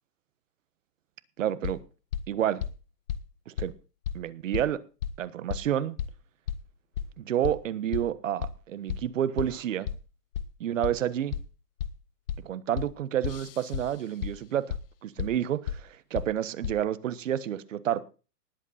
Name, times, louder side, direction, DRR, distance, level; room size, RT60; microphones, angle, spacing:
voice 1, 1.4-1.8 2.3-2.6 3.5-3.7 4.1-4.8 5.2-6.0 7.2-9.9 10.6-11.4 12.4-14.7 15.0-18.0, right 10 dB, 55° right, 1.3 m, -29 dB
sound 1, 1.6-1.7 2.1-2.2 2.6-2.7 3.1-3.2 3.6-3.7 4.0-4.1 4.5-4.6 5.0-5.1 5.5-5.6 6.0-6.1 6.5-6.6 7.0-7.1 7.4-7.5 7.9-8.0 8.4-8.5 8.9-9.0 9.4-9.5 9.9-10.0 10.3-10.4 10.8-10.9 11.3-11.4 11.8-11.9 12.3-12.4 12.8-12.9 13.2-13.8 14.2-14.3 14.7-14.8 15.2-15.3 15.7-15.8 16.1-16.2 16.6-16.7, left 9 dB, 35° left, 0.8 m, -31 dB
19.5 x 8.1 x 4.2 m
hypercardioid pair, 170°, 47 cm